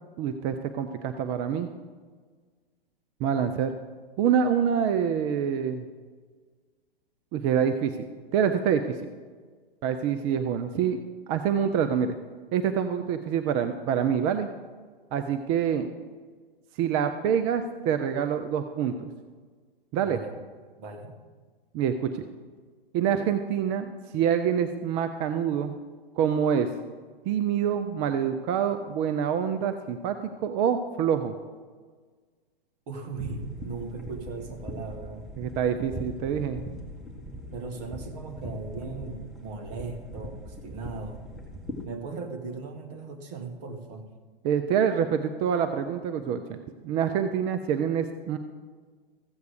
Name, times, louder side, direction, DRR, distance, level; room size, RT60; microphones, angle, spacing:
voice 1, 0.2-1.7 3.2-3.7 4.2-5.8 7.3-8.0 8.3-9.0 9.8-11.0 11.3-12.1 12.5-14.5 15.1-15.9 16.8-19.1 19.9-20.2 21.7-22.2 22.9-25.8 26.2-26.7 27.3-31.3 35.4-36.6 44.4-46.6 46.8-48.4, right 8 dB, 20° right, 8 dB, 0.3 m, -26 dB
voice 2, 20.0-20.3 20.8-21.2 32.9-35.3 35.9-36.0 37.5-41.2 41.8-44.1, right 4 dB, 45° right, 5 dB, 1.7 m, -38 dB
sound 1, 33.1-41.9, equal, ahead, 1.7 m, -40 dB
14.5 x 8.0 x 5.0 m, 1.5 s
figure-of-eight pair, 110°, 29 cm